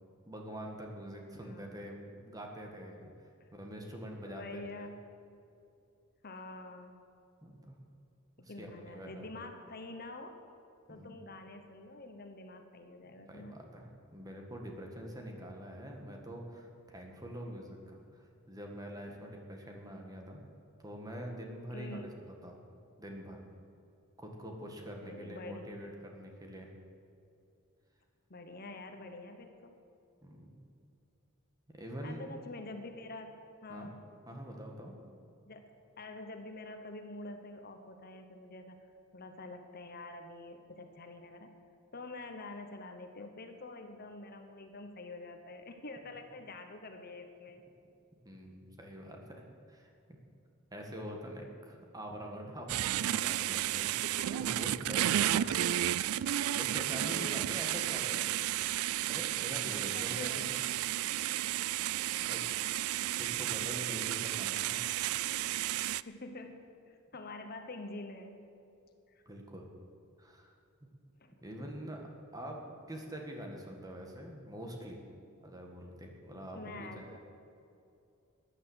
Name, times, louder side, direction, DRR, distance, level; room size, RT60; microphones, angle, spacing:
voice 1, 0.3-3.1 3.5-4.9 7.4-7.8 8.4-9.3 10.9-11.1 13.3-20.4 20.8-22.0 22.4-22.6 23.0-23.4 24.2-26.7 30.2-30.6 31.7-32.2 33.7-33.9 34.3-35.0 48.2-49.4 49.7-49.9 50.7-53.9 54.4-55.5 56.5-58.5 59.1-60.6 62.2-62.4 63.2-64.9 69.3-69.7 70.2-70.6 71.4-72.6 72.9-75.0 75.4-77.2, equal, 15° right, 1 dB, 1.7 m, -45 dB
voice 2, 1.4-1.8 3.4-3.5 4.3-5.0 6.2-7.1 8.4-10.4 10.9-13.6 21.7-22.1 25.0-25.7 28.3-29.8 32.0-34.0 35.4-35.7 36.0-38.9 39.1-41.5 41.9-47.6 54.0-54.6 55.3-56.0 56.9-57.5 59.9-60.6 62.1-62.6 66.0-68.3 69.1-69.2 71.2-71.9 76.5-77.2, left 2 dB, 45° left, 6 dB, 1.1 m, -47 dB
sound 1, 52.7-66.0, right 13 dB, 85° right, 0.3 m, -32 dB
13.5 x 10.0 x 8.0 m, 2.6 s
head